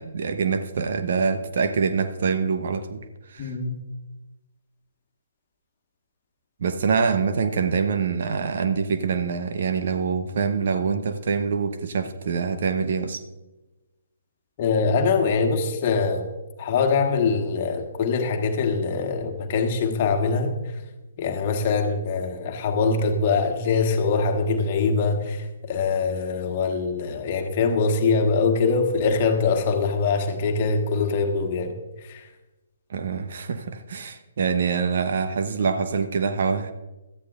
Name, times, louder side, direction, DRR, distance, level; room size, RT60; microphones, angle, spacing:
voice 1, 0.0-3.5 6.6-13.2 32.9-36.7, right 5 dB, 50° right, 0.9 m, -25 dB
voice 2, 3.4-3.8 14.6-16.3 16.6-20.8 21.2-32.3, left 4 dB, 35° left, 1.5 m, -23 dB
17.5 x 13.0 x 2.5 m
figure-of-eight pair, 130°, 0 cm